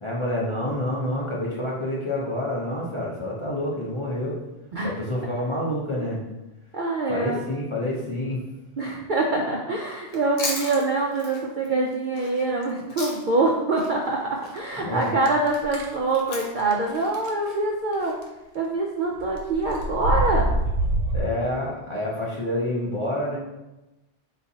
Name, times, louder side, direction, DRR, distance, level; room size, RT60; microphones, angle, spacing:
voice 1, 0.0-4.4 4.8-6.2 7.1-8.4 14.8-15.1 21.1-23.4, left 1 dB, 30° left, -5 dB, 0.7 m, -28 dB
voice 2, 6.7-7.4 8.8-18.1 18.5-20.5, right 2 dB, 60° right, -1 dB, 0.5 m, -25 dB
Chewing mastication, 10.0-13.5 13.8-18.1, left 3 dB, 90° left, 1.2 m, -37 dB
sound 1, 15.3-15.9 16.6-16.7 17.1-17.3 17.9-18.2 19.1-21.2, right 1 dB, 85° right, 1.1 m, -25 dB
4.1 x 3.9 x 2.7 m, 1.0 s
omnidirectional pair, 1.3 m